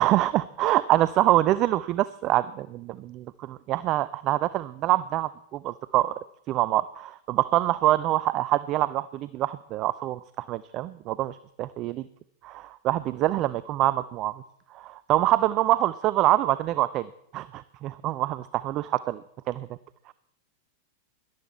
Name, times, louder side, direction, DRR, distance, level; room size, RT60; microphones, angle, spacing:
voice 1, 0.0-6.1 6.5-12.0 12.4-14.4 14.7-17.1 17.3-19.2 19.5-19.7, right 15 dB, 35° right, 17 dB, 0.4 m, -25 dB
18.0 x 12.0 x 4.3 m, 0.76 s
figure-of-eight pair, 90°, 0 cm